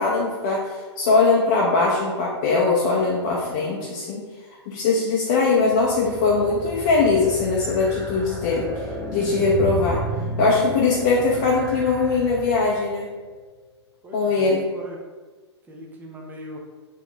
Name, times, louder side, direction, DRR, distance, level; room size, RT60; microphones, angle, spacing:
voice 1, 0.0-4.2 4.7-8.7 9.1-10.0 10.4-13.0 14.1-14.6, left 3 dB, 40° left, -4 dB, 0.6 m, -21 dB
sound 1, 5.5-12.9, equal, 5° left, 1.0 m, -32 dB
voice 2, 14.0-15.0 15.7-16.6, equal, 10° right, 0 dB, 0.6 m, -39 dB
3.9 x 3.2 x 3.1 m, 1.3 s
figure-of-eight pair, 110°, 15 cm